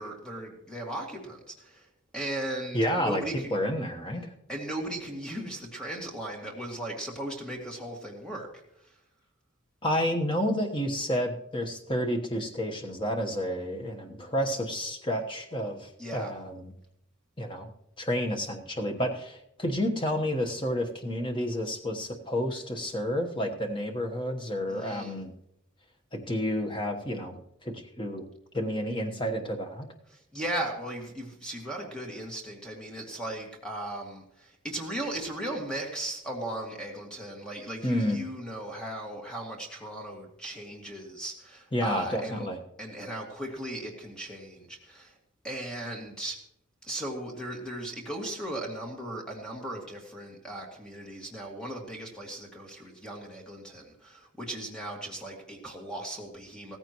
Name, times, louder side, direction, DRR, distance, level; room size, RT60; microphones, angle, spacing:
voice 1, 0.0-1.9 2.1-3.5 4.5-8.5 16.0-16.3 24.7-25.2 30.1-42.5 42.8-45.2 45.4-46.4 46.8-56.8, right 1 dB, 5° left, 0 dB, 2.0 m, -37 dB
voice 2, 2.7-3.2 3.5-4.3 9.8-16.6 17.4-17.7 18.0-25.3 26.1-28.2 28.5-29.9 37.8-38.2 41.7-42.6, equal, 25° left, 3 dB, 1.2 m, -30 dB
16.0 x 15.0 x 3.1 m, 0.79 s
head